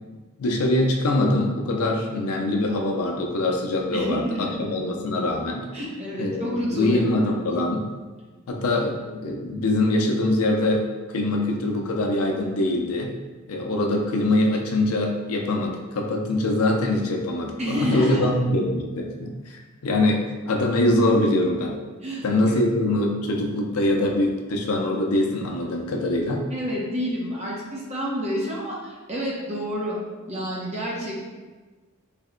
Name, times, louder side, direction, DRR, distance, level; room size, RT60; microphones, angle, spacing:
voice 1, 0.4-5.6 6.2-7.8 8.5-13.1 13.5-21.8 22.2-26.4, left 1 dB, 90° left, 1 dB, 0.5 m, -23 dB
voice 2, 3.9-4.6 5.7-7.0 7.5-7.6 17.6-18.3 22.0-22.6 26.5-30.0 30.3-31.2, equal, 30° right, -4 dB, 0.7 m, -29 dB
3.3 x 2.1 x 3.6 m, 1.3 s
head